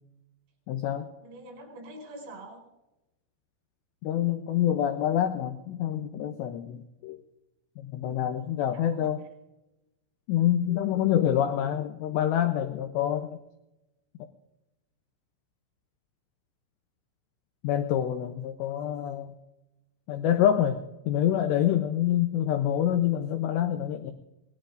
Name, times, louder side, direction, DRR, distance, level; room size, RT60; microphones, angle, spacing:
voice 1, 0.7-1.1 4.0-7.2 7.8-9.2 10.3-13.3 17.6-19.3 20.1-20.8 21.1-24.1, left 10 dB, 90° left, 7 dB, 2.4 m, -26 dB
voice 2, 1.2-2.6 8.3-9.1, right 1 dB, 90° right, 0 dB, 7.6 m, -46 dB
25.5 x 19.5 x 2.5 m, 0.97 s
omnidirectional pair, 6.0 m